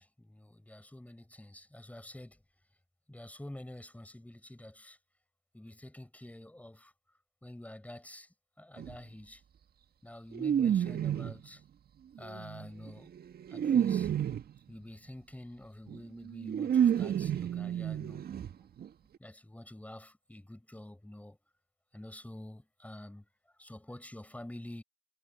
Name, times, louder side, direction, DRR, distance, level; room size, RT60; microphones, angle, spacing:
voice 1, 0.0-2.4 3.1-5.0 5.5-6.9 7.4-9.4 10.0-11.6 12.2-13.1 13.5-14.1 14.7-18.2 19.2-21.4 21.9-23.3 23.6-24.8, left 1 dB, 5° left, 5.7 m, -48 dB
sound 1, 8.8-9.0 10.3-11.5 12.2-14.6 15.9-16.0 16.3-18.5 18.8-18.9 19.1-19.2, right 9 dB, 45° right, 1.8 m, -30 dB
hypercardioid pair, 60°, 21 cm